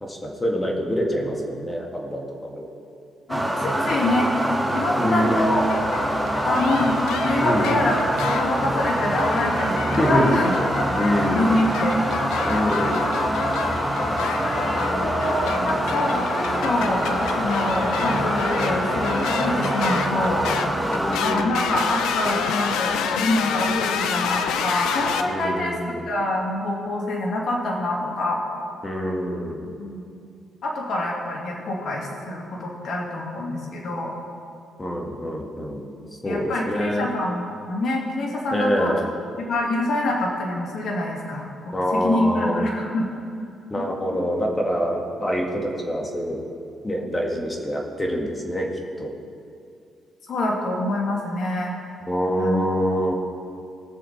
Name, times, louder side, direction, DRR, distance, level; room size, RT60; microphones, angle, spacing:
voice 1, 0.0-2.7 5.0-5.5 7.4-7.7 10.0-10.3 11.0-11.5 12.4-13.1 20.9-21.7 25.3-26.1 28.8-29.7 34.8-35.9 36.2-37.1 38.5-39.0 41.7-42.7 43.7-46.4 46.8-48.7 49.0-49.1 52.1-53.1, equal, 20° left, 0 dB, 2.2 m, -25 dB
voice 2, 3.3-4.3 4.7-5.7 6.4-8.0 8.3-10.5 10.8-12.0 12.3-12.8 14.1-17.1 17.4-20.5 21.2-25.8 26.1-28.4 29.8-30.0 30.6-34.1 36.2-38.9 39.4-43.1 50.3-51.8 52.4-52.6, left 1 dB, 60° left, -2 dB, 2.5 m, -26 dB
sound 1, 3.3-21.2, right 1 dB, 5° right, 1.3 m, -25 dB
sound 2, 5.4-25.2, left 7 dB, 90° left, 0.7 m, -29 dB
19.5 x 7.1 x 4.4 m, 2.5 s
cardioid pair, 90°, 0 cm